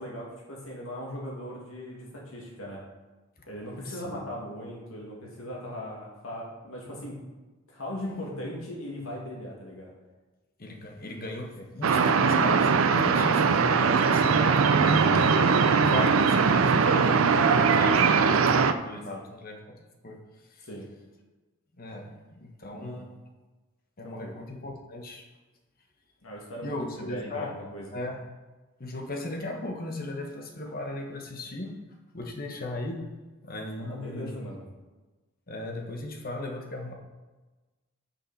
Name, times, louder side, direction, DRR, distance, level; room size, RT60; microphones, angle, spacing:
voice 1, 0.0-2.8 3.5-7.2 7.7-9.9 11.6-11.7 14.8-15.2 19.1-19.2 20.7-20.9 22.7-23.1 24.0-24.3 26.2-27.9 33.8-34.6, equal, 85° left, -2 dB, 2.3 m, -39 dB
voice 2, 3.4-4.3 10.6-15.3 15.8-19.8 20.0-20.7 21.7-23.1 24.0-25.3 26.6-27.6 27.9-28.2 28.8-31.7 32.1-33.1 33.4-34.5 35.5-36.9, left 2 dB, 45° left, 2 dB, 1.3 m, -37 dB
sound 1, 11.8-18.7, right 5 dB, 75° right, 0.5 m, -21 dB
9.3 x 5.8 x 4.2 m, 1.2 s
head